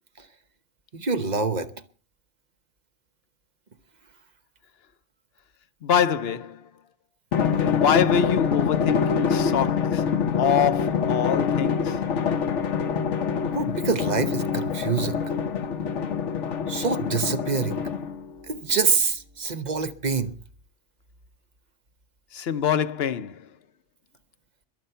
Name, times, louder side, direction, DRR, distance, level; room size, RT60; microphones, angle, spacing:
voice 1, 0.9-1.7 13.4-15.3 16.7-17.8 18.5-20.3, right 4 dB, 40° right, 1.0 m, -26 dB
voice 2, 5.8-6.6 7.7-10.1 10.4-12.0 22.3-23.5, left 8 dB, 60° left, 1.0 m, -24 dB
Drum, 7.3-18.3, left 6 dB, 75° left, 1.3 m, -25 dB
22.0 x 7.9 x 5.7 m
omnidirectional pair, 1.2 m